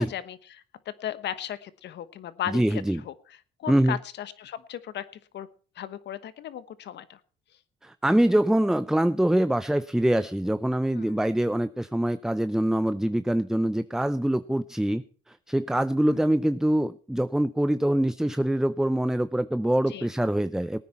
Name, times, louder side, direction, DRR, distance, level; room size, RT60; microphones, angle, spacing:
voice 1, 0.0-3.1 3.6-5.0 5.3-5.5 5.7-7.2 10.9-11.2 16.1-16.3 19.9-20.1, left 10 dB, 60° left, 14 dB, 1.2 m, -36 dB
voice 2, 2.5-3.0 3.7-4.0 7.8-20.8, right 1 dB, 5° right, 12 dB, 0.5 m, -24 dB
18.5 x 9.4 x 4.3 m, 0.40 s
supercardioid pair, 75°, 20 cm